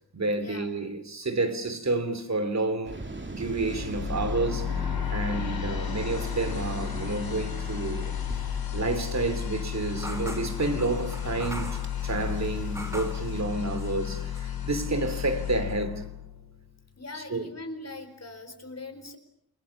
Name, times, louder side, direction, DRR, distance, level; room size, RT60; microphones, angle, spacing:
voice 1, 0.1-3.0 3.3-8.1 8.7-16.0 17.1-17.5, right 2 dB, 45° right, 3.1 m, -30 dB
Waves surf, 2.8-13.4, right 2 dB, 30° right, 3.0 m, -41 dB
sound 1, 3.6-16.7, left 10 dB, 70° left, 3.2 m, -33 dB
sound 2, 10.0-13.3 13.8-14.5 14.8-15.8, equal, 10° right, 6.2 m, -42 dB
voice 2, 17.0-19.2, left 2 dB, 40° left, 4.4 m, -41 dB
30.0 x 22.0 x 7.2 m
wide cardioid pair, 125°, 37 cm